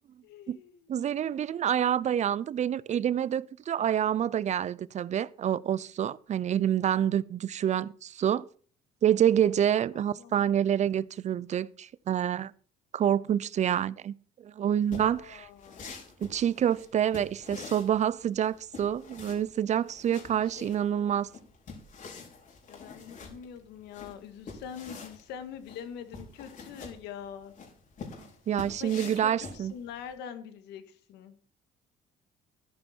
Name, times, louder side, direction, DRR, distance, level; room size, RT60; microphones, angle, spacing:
voice 1, 0.2-1.0 10.0-10.8 15.0-15.9 20.1-21.3 22.7-27.5 28.7-31.4, left 8 dB, 85° left, 1.9 m, -44 dB
voice 2, 0.9-8.5 9.0-12.5 12.9-14.1 14.4-15.5 16.2-21.3 28.5-29.7, right 9 dB, 45° right, 0.5 m, -27 dB
sound 1, 14.8-30.1, left 4 dB, 50° left, 5.3 m, -46 dB
13.5 x 11.0 x 4.5 m
cardioid pair, 110°, 17 cm